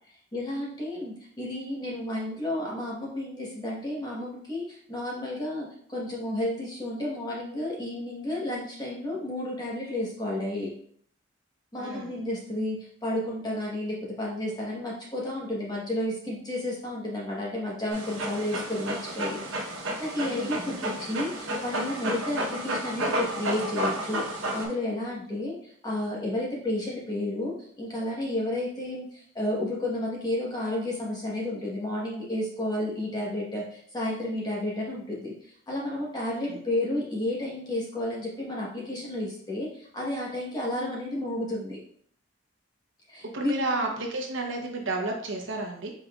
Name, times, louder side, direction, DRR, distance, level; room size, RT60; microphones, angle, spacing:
voice 1, 0.3-10.7 11.7-19.4 19.7-41.8 43.1-43.5, left 1 dB, 20° left, -4 dB, 1.1 m, -32 dB
voice 2, 11.8-12.2 20.3-20.8 25.3-25.4 36.5-36.6 43.2-45.9, right 2 dB, 70° right, 2 dB, 0.8 m, -32 dB
Dog, 17.9-24.7, right 1 dB, 90° right, 1.0 m, -31 dB
5.4 x 4.0 x 2.4 m, 0.62 s
head